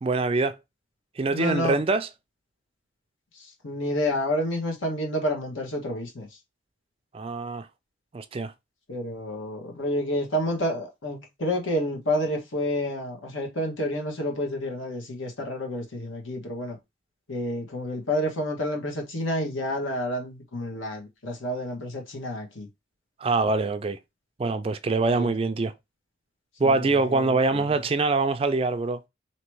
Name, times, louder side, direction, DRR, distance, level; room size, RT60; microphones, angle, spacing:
voice 1, 0.0-0.6 1.2-2.1 7.1-7.7 8.1-8.5 23.2-24.0 24.4-25.7 26.6-29.0, right 3 dB, 30° right, 0.3 m, -24 dB
voice 2, 1.3-1.8 3.4-6.3 8.9-16.8 17.3-22.7 25.1-25.3 26.6-27.7, left 1 dB, 85° left, 1.4 m, -29 dB
3.0 x 3.0 x 4.6 m
head